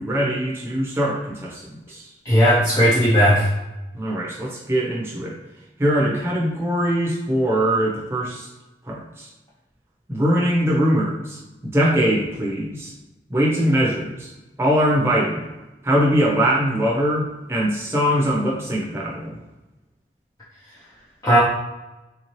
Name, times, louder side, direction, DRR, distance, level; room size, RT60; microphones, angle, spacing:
voice 1, 0.0-2.1 3.9-5.3 5.8-8.5 8.9-9.3 10.1-12.9 13.3-14.3 14.6-15.5 15.8-19.4, equal, 15° right, -4 dB, 0.7 m, -22 dB
voice 2, 2.3-3.5 21.2-21.4, equal, 20° left, -9 dB, 0.6 m, -16 dB
3.5 x 2.8 x 3.0 m, 1.1 s
head